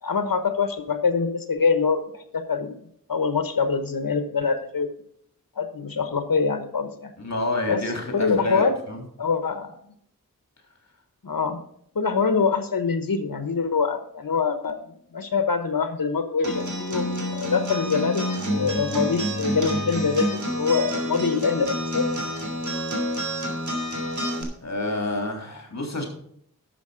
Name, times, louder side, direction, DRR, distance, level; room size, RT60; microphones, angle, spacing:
voice 1, 0.0-2.8 3.1-4.9 5.6-7.1 7.7-7.8 8.1-8.7 9.2-9.7 11.2-11.6 11.9-14.8 15.1-21.7 21.9-22.0, left 5 dB, 85° left, 8 dB, 1.2 m, -24 dB
voice 2, 7.2-9.0 24.6-26.1, left 1 dB, 55° left, 2 dB, 3.4 m, -28 dB
Acoustic guitar, 16.4-24.4, equal, 60° right, 2.9 m, -28 dB
11.5 x 7.1 x 5.1 m, 0.67 s
wide cardioid pair, 75°, 33 cm